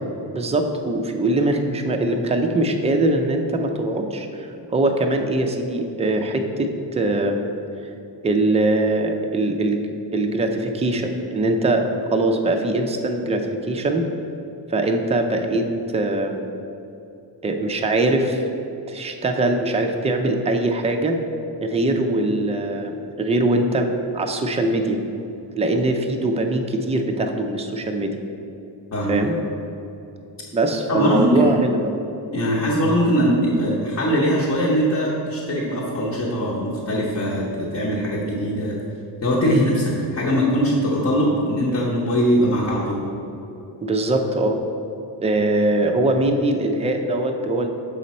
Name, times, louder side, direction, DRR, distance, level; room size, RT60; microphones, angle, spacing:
voice 1, 0.3-7.5 8.2-9.8 10.1-14.1 14.7-16.5 17.4-18.4 18.9-21.2 21.6-25.0 25.6-28.2 29.1-29.3 30.5-31.8 39.4-39.6 43.8-44.6 45.2-47.7, right 2 dB, 15° right, 4 dB, 0.3 m, -22 dB
voice 2, 30.9-31.5 32.3-38.7 39.2-39.8 40.1-43.0, equal, 40° left, -6 dB, 0.9 m, -21 dB
6.8 x 5.2 x 4.2 m, 2.8 s
wide cardioid pair, 165°, 43 cm